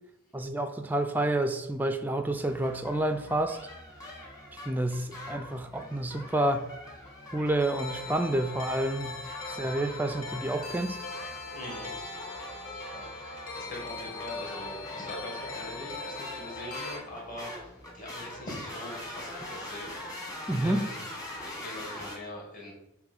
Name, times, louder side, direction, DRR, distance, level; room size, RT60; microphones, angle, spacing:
voice 1, 0.3-3.6 4.7-6.7 7.3-9.2 9.5-11.1 20.5-20.8, right 1 dB, 10° right, 0.3 m, -29 dB
sound 1, 2.3-22.2, left 1 dB, 15° left, 1.3 m, -43 dB
sound 2, 7.6-17.0, left 3 dB, 70° left, 1.5 m, -41 dB
voice 2, 11.5-11.9 12.9-19.9 20.6-21.0 21.4-22.7, left 1 dB, 40° left, 2.3 m, -42 dB
7.2 x 3.1 x 5.3 m
head